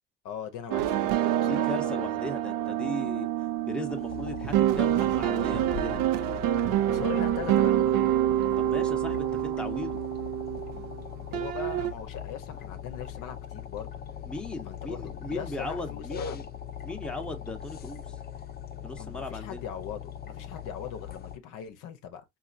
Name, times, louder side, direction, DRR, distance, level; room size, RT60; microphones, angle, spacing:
voice 1, 0.2-1.1 1.4-1.7 6.9-8.2 11.3-13.9 14.6-16.4 18.9-22.2, left 8 dB, 65° left, 0.8 m, -40 dB
sound 1, 0.7-11.0 11.3-11.9, right 13 dB, 70° right, 0.5 m, -27 dB
voice 2, 1.5-3.3 3.7-6.1 8.6-10.0 14.2-16.4 16.8-18.1 18.8-19.6, left 2 dB, 5° left, 0.8 m, -37 dB
sound 2, 3.9-21.4, left 9 dB, 30° left, 0.4 m, -40 dB
4.2 x 2.5 x 2.4 m
supercardioid pair, 75°, 34 cm